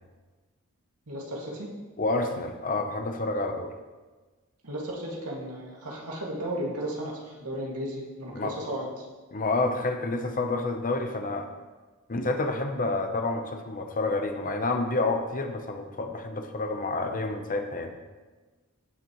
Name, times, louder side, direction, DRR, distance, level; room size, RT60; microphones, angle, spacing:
voice 1, 1.1-1.7 4.6-9.1, right 1 dB, 90° right, -3 dB, 2.3 m, -34 dB
voice 2, 2.0-3.7 8.3-8.5 9.3-11.5 12.1-17.9, left 2 dB, 40° left, 5 dB, 0.9 m, -29 dB
16.5 x 6.7 x 3.2 m, 1.3 s
head